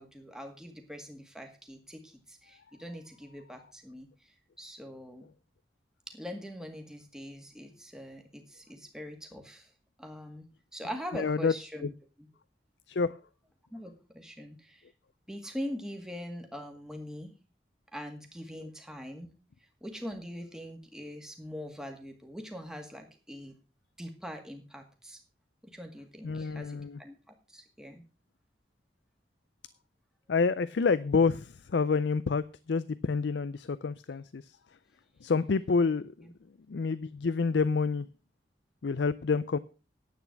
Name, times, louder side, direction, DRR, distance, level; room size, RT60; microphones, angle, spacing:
voice 1, 0.0-5.3 6.1-9.7 10.0-10.4 10.7-11.9 13.7-14.9 15.3-17.3 17.9-19.3 19.8-23.5 24.0-25.2 25.6-28.0, equal, 5° right, 4 dB, 1.9 m, -43 dB
voice 2, 11.1-11.5 11.8-11.9 12.9-13.2 18.6-18.7 26.2-27.0 30.3-34.6 35.2-36.3 36.7-38.1 38.8-39.6, left 4 dB, 75° left, 15 dB, 0.5 m, -28 dB
10.5 x 8.5 x 5.8 m, 0.34 s
head